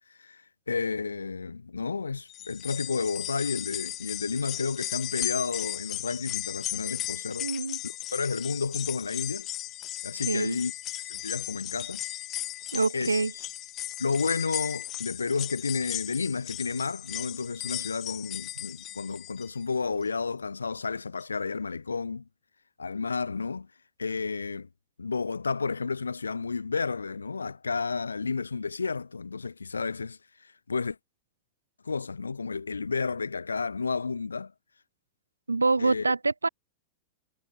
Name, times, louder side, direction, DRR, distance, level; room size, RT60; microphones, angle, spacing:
voice 1, 0.7-7.5 7.8-9.5 10.0-10.7 11.0-12.0 12.9-13.2 14.0-22.3 22.8-23.7 24.0-24.7 25.0-31.0 31.8-34.5 35.8-36.1, left 4 dB, 75° left, 2.9 m, -31 dB
sound 1, 2.3-19.6 20.0-20.1 21.2-21.3, left 14 dB, 35° left, 1.1 m, -36 dB
voice 2, 7.4-7.8 10.3-10.6 12.7-13.3 35.5-36.5, right 3 dB, 80° right, 1.7 m, -26 dB
figure-of-eight pair, 90°, 0 cm